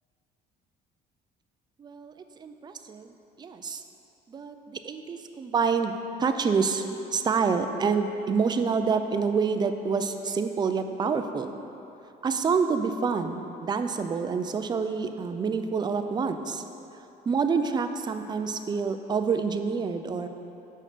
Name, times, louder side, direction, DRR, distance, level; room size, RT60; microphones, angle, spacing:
voice 1, 1.8-2.1 2.4-3.1 3.4-3.8 4.3-5.9 6.2-6.8 7.1-11.5 12.2-16.6 17.3-20.3, right 5 dB, 25° right, 8 dB, 0.4 m, -27 dB
6.4 x 5.8 x 5.0 m, 2.9 s
cardioid pair, 110°, 17 cm